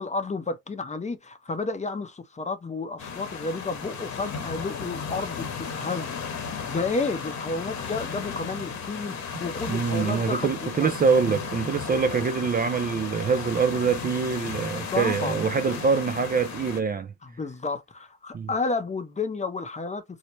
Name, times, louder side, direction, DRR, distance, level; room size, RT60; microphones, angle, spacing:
voice 1, 0.0-6.1 6.7-9.1 9.4-10.9 14.9-15.4 17.2-20.0, left 3 dB, 25° left, 0.7 m, -31 dB
sound 1, 3.0-16.8, left 6 dB, 65° left, 1.2 m, -35 dB
voice 2, 9.7-17.1 18.3-18.5, right 5 dB, 30° right, 0.4 m, -25 dB
4.5 x 2.1 x 2.9 m
cardioid pair, 90°, 30 cm